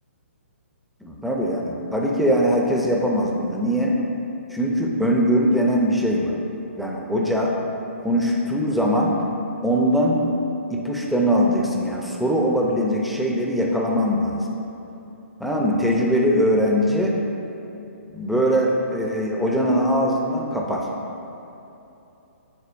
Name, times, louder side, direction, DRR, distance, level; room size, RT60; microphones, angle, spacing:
voice 1, 1.0-4.0 4.5-6.3 6.8-7.6 8.0-9.2 9.6-10.2 10.7-14.5 15.4-17.2 18.1-20.9, equal, ahead, -2 dB, 0.5 m, -21 dB
9.6 x 4.2 x 2.6 m, 2.9 s
hypercardioid pair, 140°, 7 cm